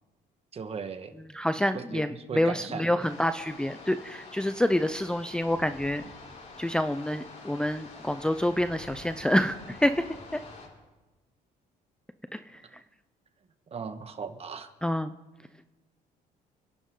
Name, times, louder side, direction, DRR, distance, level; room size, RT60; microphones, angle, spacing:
voice 1, 0.5-1.1 1.7-3.0 13.7-14.7, right 5 dB, 35° right, 7 dB, 1.6 m, -37 dB
voice 2, 1.3-6.0 6.6-10.2 12.3-12.6 14.8-15.1, left 1 dB, 5° left, 9 dB, 0.6 m, -27 dB
sound 1, 3.0-10.7, left 3 dB, 45° left, 6.0 m, -47 dB
30.0 x 11.0 x 3.9 m, 1.1 s
cardioid pair, 110°, 17 cm